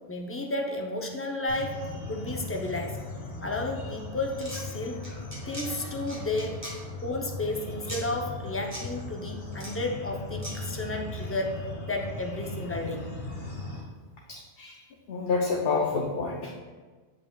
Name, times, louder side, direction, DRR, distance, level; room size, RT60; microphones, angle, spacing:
voice 1, 0.1-1.8 2.1-3.0 3.4-5.0 5.5-6.6 7.0-13.1, left 2 dB, 20° left, 1 dB, 0.4 m, -32 dB
sound 1, 1.5-13.8, left 2 dB, 80° left, 1.6 m, -38 dB
sound 2, 4.3-4.6 5.0-5.7 6.1-6.7 7.9-8.0 8.7-8.8 9.5-9.7 10.4-10.5, equal, 15° right, 1.3 m, -38 dB
voice 2, 14.3-14.8 15.1-16.5, left 4 dB, 65° left, -2 dB, 0.9 m, -28 dB
8.2 x 5.6 x 2.2 m, 1.4 s
omnidirectional pair, 1.1 m